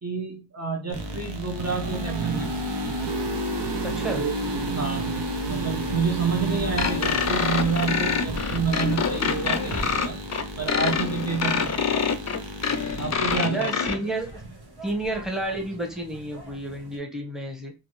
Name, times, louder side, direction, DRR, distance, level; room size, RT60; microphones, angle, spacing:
voice 1, 0.0-2.6 4.0-4.3 4.7-5.1 5.5-10.2 10.6-12.1 13.0-13.7, right 5 dB, 40° right, 0.7 m, -29 dB
sound 1, 0.9-13.1, right 1 dB, 90° right, 0.7 m, -31 dB
sound 2, 2.3-17.0, right 1 dB, 65° right, 1.0 m, -42 dB
voice 2, 3.8-4.3 13.5-14.3 14.8-17.7, right 1 dB, ahead, 0.9 m, -31 dB
sound 3, 6.8-14.0, left 6 dB, 45° left, 0.4 m, -26 dB
2.6 x 2.6 x 3.0 m
wide cardioid pair, 60°, 40 cm